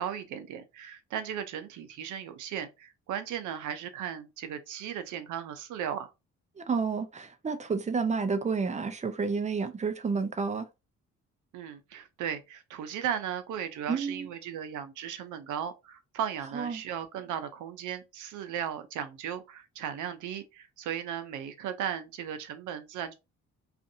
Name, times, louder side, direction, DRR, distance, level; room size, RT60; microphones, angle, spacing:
voice 1, 0.0-6.1 11.5-23.1, right 9 dB, 80° right, 0.6 m, -36 dB
voice 2, 6.6-10.7 13.9-14.3 16.5-16.8, right 5 dB, 25° right, 0.5 m, -30 dB
2.6 x 2.5 x 2.6 m
cardioid pair, 90°, 30 cm